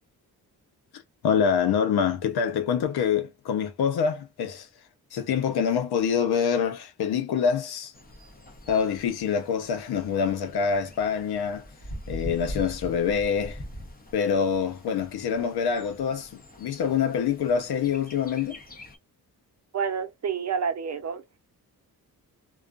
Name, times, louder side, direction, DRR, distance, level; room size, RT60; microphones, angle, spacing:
voice 1, 1.2-4.7 5.1-7.9 8.7-11.6 12.1-13.6 14.1-18.6, left 7 dB, 80° left, 0.8 m, -25 dB
Bird, 7.9-19.0, equal, 25° left, 0.8 m, -43 dB
voice 2, 19.7-21.2, right 6 dB, 45° right, 0.7 m, -29 dB
2.4 x 2.3 x 2.4 m
cardioid pair, 85°, 38 cm